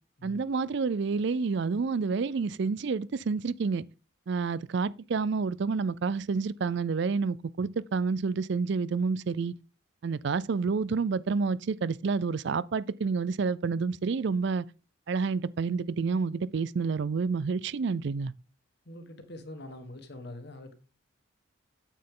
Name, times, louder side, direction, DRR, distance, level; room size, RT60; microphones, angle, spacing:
voice 1, 0.2-3.8 4.3-9.5 10.0-14.6 15.1-18.3, right 4 dB, 55° right, 0.4 m, -29 dB
voice 2, 18.8-20.7, left 1 dB, 55° left, 1.6 m, -44 dB
9.1 x 8.8 x 3.8 m
head